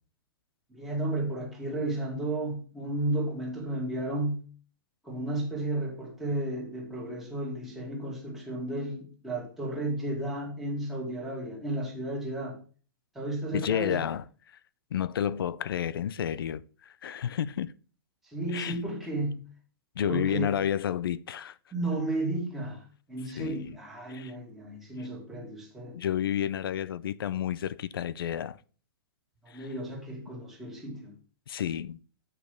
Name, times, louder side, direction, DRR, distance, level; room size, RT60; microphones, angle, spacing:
voice 1, 0.7-4.4 5.0-12.6 13.1-14.1 18.2-19.4 20.1-20.5 21.7-22.8 23.1-26.0 29.4-31.1, right 1 dB, ahead, 1.9 m, -33 dB
voice 2, 13.5-14.6 14.9-17.7 18.5-18.8 20.0-21.6 23.4-23.7 24.1-24.3 25.9-28.6 29.5-29.7 31.5-32.0, left 9 dB, 80° left, 0.5 m, -31 dB
8.5 x 5.2 x 5.1 m
hypercardioid pair, 170°, 12 cm